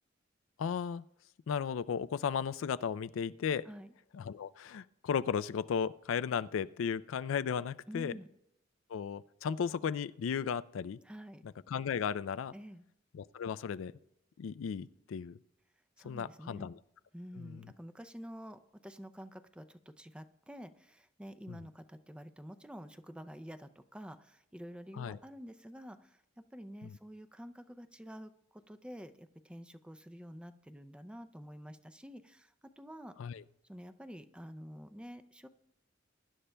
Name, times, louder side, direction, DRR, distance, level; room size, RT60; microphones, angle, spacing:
voice 1, 0.6-1.0 1.5-3.6 4.1-8.1 8.9-11.0 11.7-12.5 13.1-13.9 14.4-15.4 16.0-16.7 17.4-17.5 25.0-25.2 33.2-33.4, left 7 dB, 85° left, 16 dB, 0.4 m, -35 dB
voice 2, 7.9-8.3 11.0-11.4 12.5-12.8 16.0-16.7 17.1-26.2 26.5-33.1 33.7-35.5, equal, 5° right, 9 dB, 0.4 m, -49 dB
23.0 x 11.5 x 2.2 m, 0.80 s
head